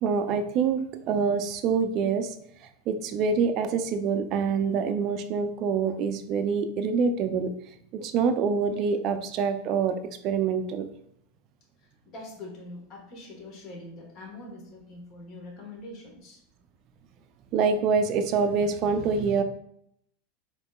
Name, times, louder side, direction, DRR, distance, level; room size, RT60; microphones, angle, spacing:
voice 1, 0.0-2.4 2.6-7.5 7.9-9.9 10.2-10.9 17.5-19.4, right 5 dB, 45° right, 8 dB, 0.3 m, -26 dB
voice 2, 11.8-16.4, left 2 dB, 45° left, 0 dB, 1.3 m, -44 dB
4.2 x 2.9 x 2.2 m, 0.73 s
hypercardioid pair, 90°, 0 cm